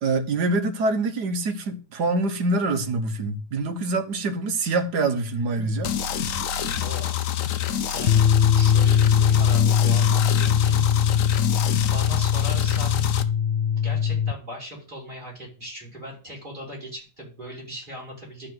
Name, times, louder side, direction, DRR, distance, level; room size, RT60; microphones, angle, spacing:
voice 1, 0.0-5.9 8.5-8.6, right 3 dB, 70° right, 1.7 m, -25 dB
sound 1, 5.8-13.2, left 9 dB, 60° left, 1.0 m, -27 dB
voice 2, 6.8-7.1 7.9-10.8 11.7-13.3 13.8-18.5, equal, 25° right, 5.6 m, -38 dB
sound 2, 8.1-14.3, left 8 dB, 90° left, 0.5 m, -20 dB
11.5 x 3.9 x 7.8 m
omnidirectional pair, 1.8 m